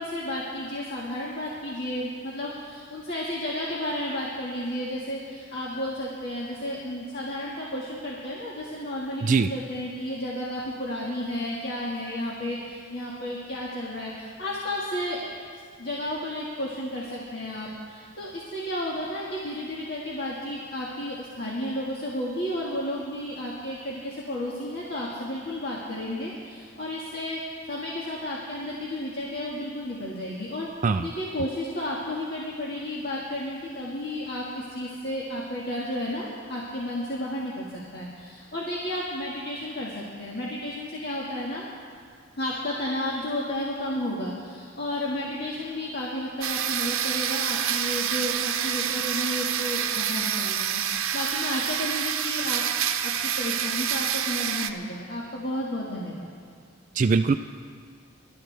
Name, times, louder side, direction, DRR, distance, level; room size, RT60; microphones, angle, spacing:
voice 1, 0.0-15.2 15.8-27.4 27.7-30.7 31.0-41.6 42.4-56.3, left 1 dB, 50° left, -5 dB, 1.8 m, -32 dB
sound 1, 46.4-54.7, right 9 dB, 85° right, 0.7 m, -27 dB
voice 2, 56.9-57.3, right 4 dB, 35° right, 9 dB, 0.3 m, -21 dB
24.0 x 12.5 x 3.4 m, 2.1 s
head